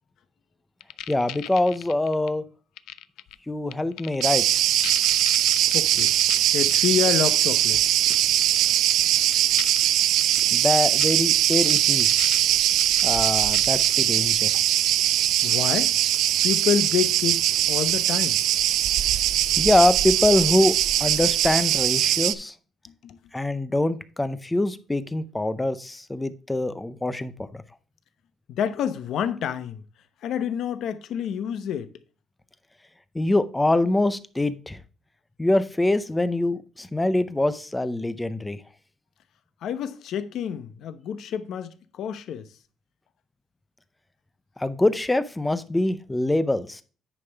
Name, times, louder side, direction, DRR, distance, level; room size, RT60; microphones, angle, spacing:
sound 1, 0.8-2.3 2.8-3.3 3.7-4.4 4.8-6.4 6.7-6.9 8.1-8.2 8.4-9.1 9.3-9.8 10.2-10.4 11.0-11.1 11.5-14.0, left 13 dB, 90° left, 0.4 m, -36 dB
voice 1, 1.1-2.5 3.5-4.5 10.5-12.3 13.0-14.5 19.1-19.2 19.6-22.6 23.3-27.6 33.1-34.8 35.4-38.6 44.6-46.8, left 2 dB, 10° left, 0.5 m, -24 dB
Cricket, 4.2-22.3, right 12 dB, 70° right, 0.5 m, -21 dB
voice 2, 5.7-6.1 6.5-7.8 15.4-15.9 16.4-18.4 22.9-23.2 28.5-29.8 30.2-31.9 39.6-42.5, left 8 dB, 55° left, 0.8 m, -28 dB
9.9 x 5.5 x 3.4 m
cardioid pair, 175°, 0 cm